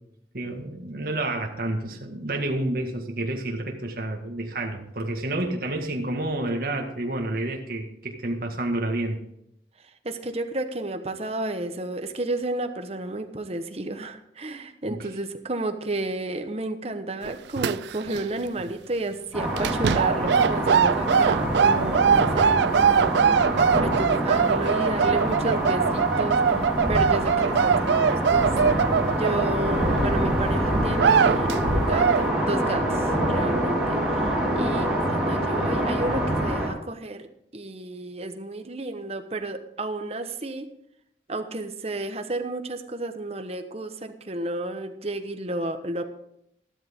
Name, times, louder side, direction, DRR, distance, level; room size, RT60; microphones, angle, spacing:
voice 1, 0.3-9.2 14.9-15.1, right 1 dB, 55° right, 2 dB, 1.8 m, -29 dB
voice 2, 10.0-37.2 37.5-40.7 41.3-46.1, right 2 dB, 35° right, 7 dB, 1.1 m, -32 dB
sound 1, 17.3-18.2 18.5-18.7 19.6-30.1 30.5-30.6 30.9-31.6 31.9-32.3, right 6 dB, 75° right, 0.4 m, -22 dB
sound 2, 19.3-36.7, right 1 dB, ahead, 3.7 m, -25 dB
13.5 x 12.5 x 3.7 m, 0.76 s
head